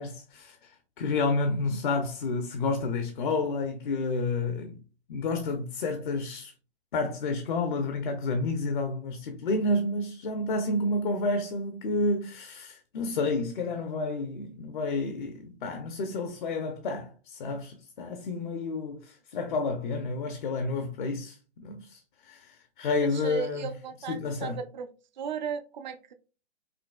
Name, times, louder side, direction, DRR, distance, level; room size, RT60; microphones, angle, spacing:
voice 1, 0.0-4.8 5.1-6.5 6.9-23.7 24.1-24.6, left 3 dB, 45° left, 0.6 m, -30 dB
voice 2, 23.0-24.9 25.2-26.1, right 7 dB, 40° right, 0.5 m, -36 dB
5.1 x 2.8 x 2.2 m
figure-of-eight pair, 135°, 34 cm